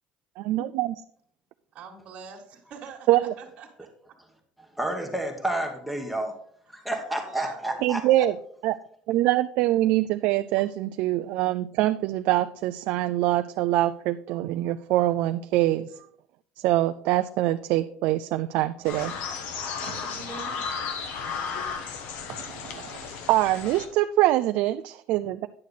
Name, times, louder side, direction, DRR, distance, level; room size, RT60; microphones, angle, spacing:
voice 1, 0.4-0.9 3.1-3.3 7.8-8.3 8.6-8.8 9.1-15.9 16.6-19.1 22.3-25.5, right 15 dB, 65° right, 0.3 m, -24 dB
voice 2, 1.7-3.9 7.1-7.8 19.7-20.7, right 6 dB, 40° right, 1.7 m, -44 dB
voice 3, 4.8-6.3 6.7-8.2, right 1 dB, ahead, 1.1 m, -30 dB
sound 1, 18.8-23.9, left 6 dB, 65° left, 1.1 m, -34 dB
9.6 x 6.5 x 4.0 m
cardioid pair, 150°, 3 cm